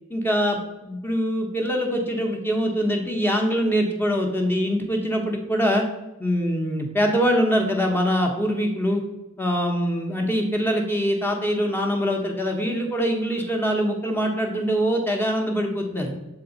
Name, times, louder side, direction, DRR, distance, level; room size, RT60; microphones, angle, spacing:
voice 1, 0.1-5.8 6.2-9.0 9.4-16.1, equal, 10° left, 2 dB, 0.9 m, -23 dB
6.9 x 4.5 x 3.9 m, 1.0 s
head